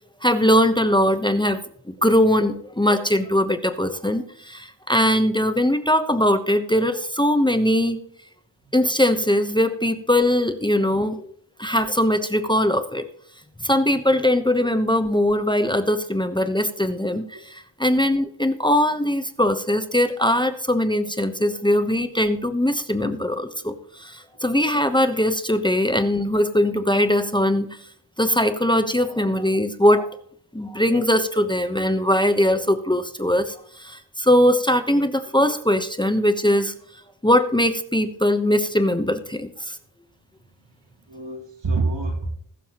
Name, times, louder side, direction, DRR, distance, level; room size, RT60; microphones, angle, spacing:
voice 1, 0.2-1.6 2.0-8.0 8.7-11.3 11.6-13.0 13.6-27.7 28.2-30.1 30.5-36.7 37.2-39.8, left 1 dB, 10° left, 8 dB, 1.0 m, -21 dB
voice 2, 40.4-40.8 41.1-42.3, right 3 dB, 75° right, 1 dB, 3.0 m, -27 dB
21.0 x 7.0 x 3.0 m, 0.67 s
wide cardioid pair, 75°, 44 cm